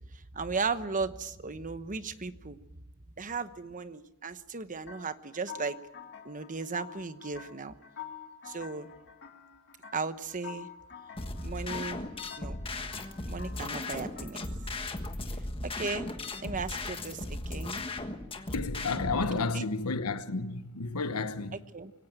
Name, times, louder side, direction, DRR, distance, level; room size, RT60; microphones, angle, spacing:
voice 1, 0.1-2.6 3.2-5.8 6.2-7.7 8.4-8.9 9.9-10.7 11.4-12.0 12.4-12.6 13.3-14.4 15.6-16.1 16.4-17.9 19.3-19.6 21.7-21.9, right 4 dB, 35° right, 1.0 m, -36 dB
sound 1, 4.9-14.8, left 8 dB, 50° left, 2.0 m, -48 dB
sound 2, 11.2-19.2, left 2 dB, 25° left, 1.5 m, -37 dB
voice 2, 18.5-21.6, left 3 dB, 85° left, 1.1 m, -31 dB
23.5 x 17.0 x 9.0 m
head